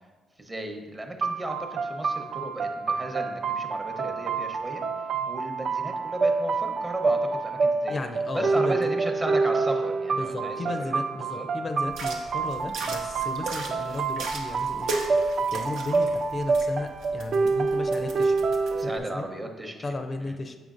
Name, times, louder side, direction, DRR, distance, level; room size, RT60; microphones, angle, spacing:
voice 1, 0.4-8.0 8.3-11.5 18.7-20.0 20.2-20.4, right 1 dB, 20° right, 3 dB, 0.8 m, -35 dB
sound 1, 1.2-19.0, right 4 dB, 55° right, 0.4 m, -27 dB
voice 2, 7.9-8.8 10.2-14.9 15.5-18.4 18.8-19.3 19.8-20.6, left 2 dB, 35° left, 6 dB, 0.4 m, -34 dB
sound 2, 11.9-18.8, right 3 dB, 85° right, 0.8 m, -37 dB
7.7 x 5.1 x 2.5 m, 1.3 s
cardioid pair, 90°, 0 cm